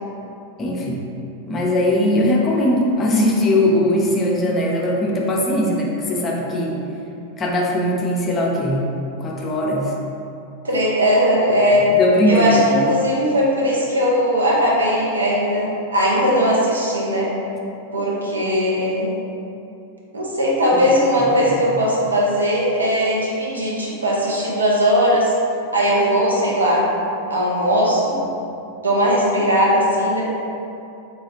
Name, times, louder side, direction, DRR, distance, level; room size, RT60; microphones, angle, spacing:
voice 1, 0.6-1.0 1.5-6.8 7.4-8.9 9.2-9.9 11.7-12.5 21.4-21.5, left 1 dB, 25° left, -2 dB, 0.5 m, -20 dB
voice 2, 10.6-11.9 12.2-17.3 17.9-19.1 20.1-25.3 25.7-26.9 27.3-28.3 28.8-30.3, equal, 75° right, -4 dB, 0.6 m, -18 dB
3.2 x 2.3 x 2.9 m, 2.7 s
figure-of-eight pair, 90°, 0 cm